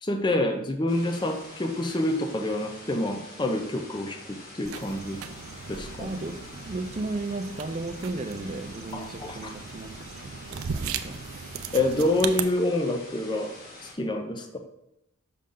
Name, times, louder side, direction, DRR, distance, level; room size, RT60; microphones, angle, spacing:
voice 1, 0.0-5.2 5.7-6.1 8.9-9.5 11.7-13.5 14.0-14.6, left 1 dB, 20° left, 5 dB, 0.6 m, -27 dB
sound 1, 0.9-13.9, left 2 dB, 45° left, 1.7 m, -46 dB
sound 2, 4.7-12.4, right 7 dB, 90° right, 0.5 m, -37 dB
voice 2, 5.9-11.2, right 2 dB, 30° right, 7 dB, 0.5 m, -35 dB
6.3 x 5.6 x 3.8 m, 0.83 s
head